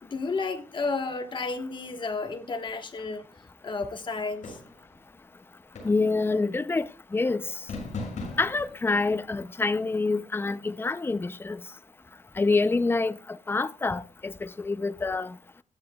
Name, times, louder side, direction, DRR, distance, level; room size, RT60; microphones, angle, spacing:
voice 1, 0.0-3.2 3.6-4.6, left 3 dB, 40° left, 1.3 m, -32 dB
sound 1, 4.4-4.9 5.8-6.2 7.7-8.7, left 3 dB, 70° left, 7.0 m, -37 dB
voice 2, 5.8-7.5 8.4-11.6 12.4-13.2 13.5-15.3, left 3 dB, 20° left, 0.5 m, -26 dB
16.0 x 10.5 x 2.3 m
wide cardioid pair, 145°, 13 cm